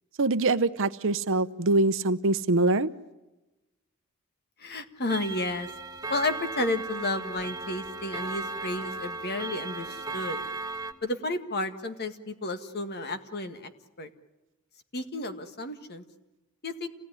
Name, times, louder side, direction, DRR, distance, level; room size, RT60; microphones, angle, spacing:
voice 1, 0.2-2.9, right 2 dB, 65° right, 13 dB, 0.8 m, -24 dB
voice 2, 4.6-5.7 6.1-10.4 11.0-13.7 14.0-14.1 14.9-16.0 16.6-16.9, left 2 dB, 50° left, 7 dB, 1.8 m, -32 dB
Clock, 5.1-10.9, right 3 dB, 20° right, 1.6 m, -36 dB
28.0 x 17.5 x 9.9 m, 1.1 s
head